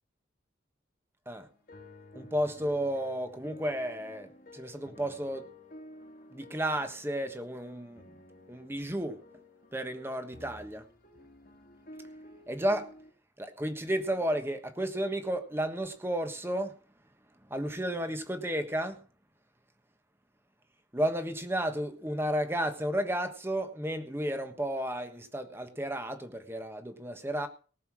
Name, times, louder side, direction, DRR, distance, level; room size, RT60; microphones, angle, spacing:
sound 1, 1.4-13.1, left 1 dB, 50° left, 2.0 m, -52 dB
voice 1, 2.1-5.5 6.3-8.0 8.5-9.2 9.7-10.8 12.5-12.9 13.4-16.8 17.5-19.0 20.9-27.5, right 1 dB, 15° right, 1.3 m, -32 dB
18.5 x 6.9 x 6.1 m
head